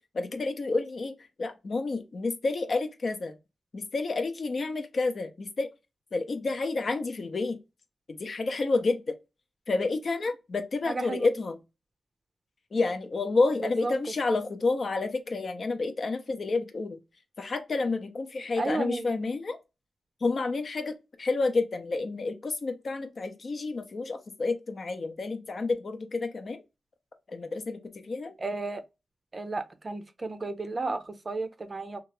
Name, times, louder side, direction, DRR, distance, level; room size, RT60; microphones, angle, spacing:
voice 1, 0.1-3.4 3.7-5.7 6.1-7.6 8.1-9.2 9.7-11.6 12.7-17.0 17.4-19.6 20.2-26.6 27.3-28.3, left 3 dB, 60° left, 0.6 m, -29 dB
voice 2, 10.9-11.3 13.6-13.9 18.6-19.1 28.4-28.8 29.3-32.0, right 3 dB, 40° right, 0.5 m, -33 dB
2.9 x 2.3 x 2.9 m
cardioid pair, 60°, 0 cm